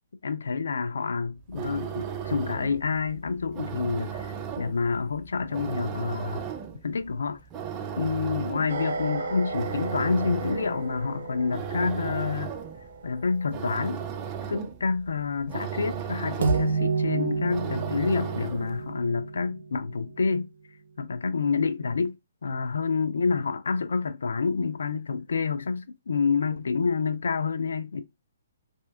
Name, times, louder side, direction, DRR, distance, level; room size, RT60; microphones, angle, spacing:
voice 1, 0.2-6.4 6.8-7.4 8.0-12.5 13.0-14.0 14.5-20.5 21.0-22.2 22.4-28.0, left 5 dB, 80° left, 0.3 m, -28 dB
sound 1, 1.4-18.9, right 8 dB, 25° right, 0.4 m, -36 dB
sound 2, 8.7-13.0 16.4-20.3, right 5 dB, 60° right, 0.7 m, -31 dB
3.3 x 2.6 x 2.3 m
hypercardioid pair, 145°, 0 cm